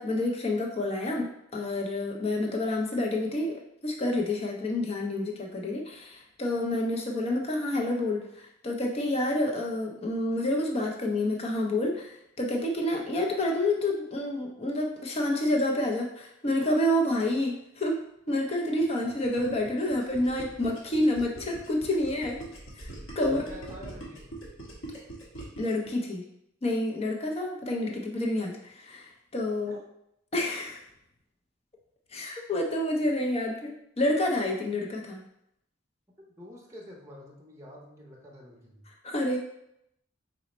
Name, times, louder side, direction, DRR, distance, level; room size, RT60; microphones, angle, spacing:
voice 1, 0.0-22.4 22.8-22.9 23.2-23.5 25.6-26.2 26.6-29.8 30.3-30.8 32.1-35.2 39.0-39.4, left 1 dB, 30° left, 0 dB, 0.5 m, -29 dB
Gurgling, 18.8-25.9, right 2 dB, 85° left, 1.1 m, -43 dB
voice 2, 23.2-24.4 29.7-29.8 36.3-38.8, equal, 15° right, -3 dB, 0.6 m, -47 dB
4.0 x 2.1 x 4.0 m, 0.78 s
head